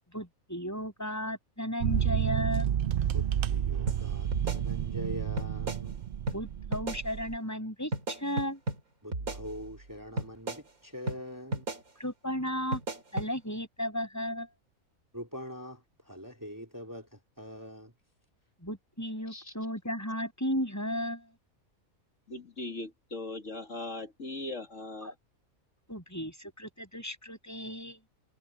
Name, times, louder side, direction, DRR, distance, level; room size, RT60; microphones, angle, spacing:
voice 1, 0.1-2.7 6.3-8.6 12.0-12.8 13.1-14.5 18.6-21.3 25.0-25.1 25.9-28.0, equal, 10° left, 7.7 m, -34 dB
sound 1, 1.8-7.4, right 10 dB, 55° right, 0.6 m, -30 dB
voice 2, 3.1-6.0 9.0-11.7 15.1-17.9, equal, 15° right, 3.8 m, -43 dB
sound 2, 3.9-4.0 4.3-5.1 5.4-5.8 6.3-6.4 6.7-7.0 7.9-8.8 9.1-9.8 10.2-10.6 11.1-11.2 11.5-11.8 12.7-13.3, right 2 dB, 85° right, 3.5 m, -34 dB
voice 3, 22.3-25.1, left 2 dB, 60° left, 2.8 m, -39 dB
omnidirectional pair, 1.5 m